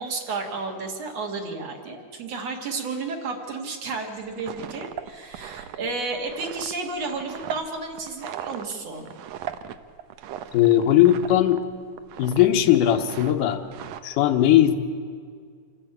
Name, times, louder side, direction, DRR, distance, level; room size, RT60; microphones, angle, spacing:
voice 1, 0.0-9.1, right 3 dB, 55° right, 2 dB, 2.8 m, -32 dB
sound 1, 4.2-11.7 11.9-12.5 12.8-14.0, right 10 dB, 75° right, 1.6 m, -38 dB
voice 2, 10.5-11.6 12.2-13.6 14.0-14.8, left 12 dB, 85° left, 6 dB, 2.6 m, -18 dB
26.5 x 12.5 x 8.7 m, 2.1 s
omnidirectional pair, 3.7 m